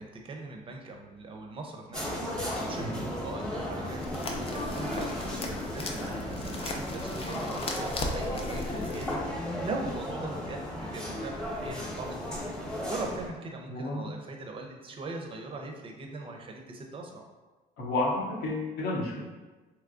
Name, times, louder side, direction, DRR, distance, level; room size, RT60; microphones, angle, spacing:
voice 1, 0.0-2.9 3.2-17.2, right 2 dB, 30° right, 2 dB, 0.5 m, -40 dB
sound 1, 1.9-13.3, left 1 dB, 5° left, 0.8 m, -35 dB
sound 2, 4.0-9.1, left 2 dB, 35° left, 0.4 m, -37 dB
voice 2, 13.7-14.1 17.8-19.2, left 2 dB, 75° left, -3 dB, 0.8 m, -31 dB
3.5 x 2.9 x 2.5 m, 1.2 s
cardioid pair, 110°, 17 cm